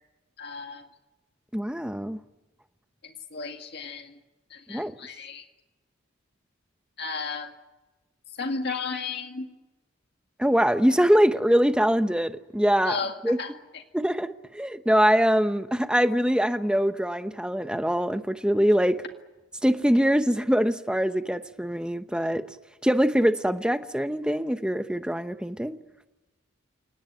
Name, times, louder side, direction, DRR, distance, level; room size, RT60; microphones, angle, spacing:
voice 1, 0.4-0.9 3.0-4.2 4.5-5.4 7.0-7.5 8.4-9.5 12.8-13.5, left 4 dB, 55° left, 2.0 m, -34 dB
voice 2, 1.5-2.2 4.7-4.9 10.4-13.0 13.2-13.4 13.9-19.0 19.6-22.4 22.8-25.8, equal, 5° right, 0.9 m, -23 dB
28.5 x 18.5 x 9.1 m
head